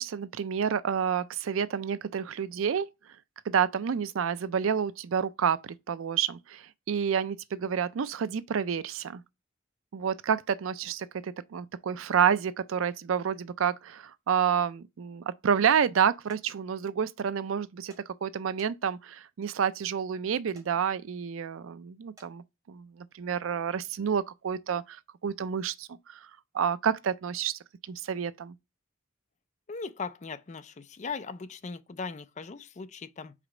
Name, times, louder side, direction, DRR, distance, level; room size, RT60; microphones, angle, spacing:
voice 1, 0.0-2.9 3.5-9.2 9.9-26.3 26.5-27.5 27.9-28.5, right 7 dB, 85° right, 0.4 m, -29 dB
sound 1, 16.3-16.4 17.9-18.0 18.6-19.0 20.5-20.7 22.2-22.3, right 1 dB, 20° right, 2.2 m, -56 dB
voice 2, 29.7-33.3, left 4 dB, 35° left, 0.4 m, -39 dB
5.0 x 4.1 x 4.9 m
head